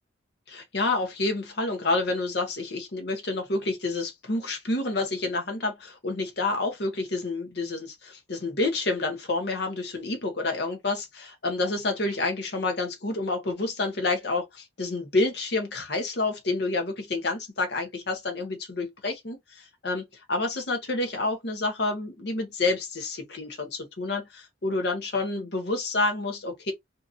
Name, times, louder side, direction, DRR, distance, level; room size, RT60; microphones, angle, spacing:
voice 1, 0.5-26.7, left 2 dB, 55° left, 0.9 m, -29 dB
2.8 x 2.4 x 2.4 m
head